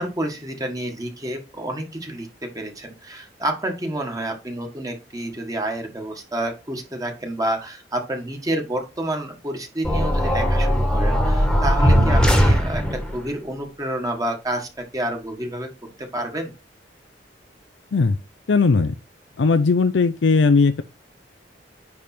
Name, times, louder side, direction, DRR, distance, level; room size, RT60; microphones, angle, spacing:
voice 1, 0.0-15.7 16.0-16.5, right 1 dB, 20° right, 1.5 m, -29 dB
sound 1, 9.8-13.2, equal, 5° left, 1.4 m, -18 dB
voice 2, 18.5-18.9 19.4-20.8, left 4 dB, 85° left, 0.5 m, -18 dB
9.8 x 3.5 x 4.3 m
head